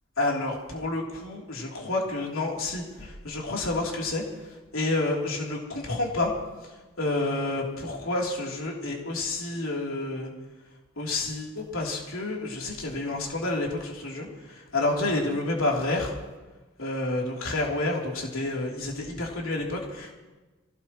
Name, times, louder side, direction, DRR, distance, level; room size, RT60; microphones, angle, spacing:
voice 1, 0.2-4.2 4.7-6.3 7.0-10.3 11.0-16.1 16.8-20.1, left 2 dB, 90° left, -2 dB, 3.4 m, -29 dB
25.0 x 17.0 x 3.1 m, 1.2 s
head